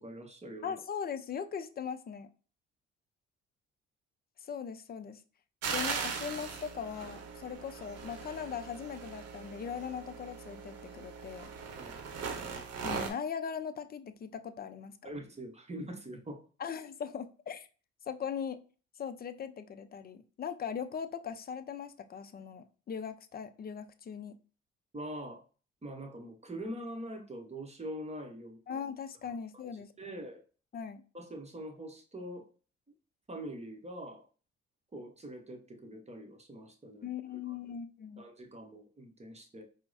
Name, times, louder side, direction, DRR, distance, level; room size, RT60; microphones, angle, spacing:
voice 1, 0.0-0.7 11.8-12.0 15.0-16.4 24.9-25.4 25.8-28.6 29.2-29.3 30.0-30.4 31.1-32.5 33.3-34.3 34.9-37.6 38.2-39.6, right 1 dB, 20° right, 0.9 m, -43 dB
voice 2, 0.6-2.3 4.4-5.2 5.7-11.5 12.8-14.9 16.6-17.7 18.1-18.6 19.0-24.3 28.7-30.2 30.7-31.0 37.0-38.2, left 7 dB, 30° left, 0.4 m, -40 dB
sound 1, 5.6-13.1, right 5 dB, 50° right, 0.8 m, -39 dB
4.5 x 2.1 x 2.5 m
hypercardioid pair, 55°, 31 cm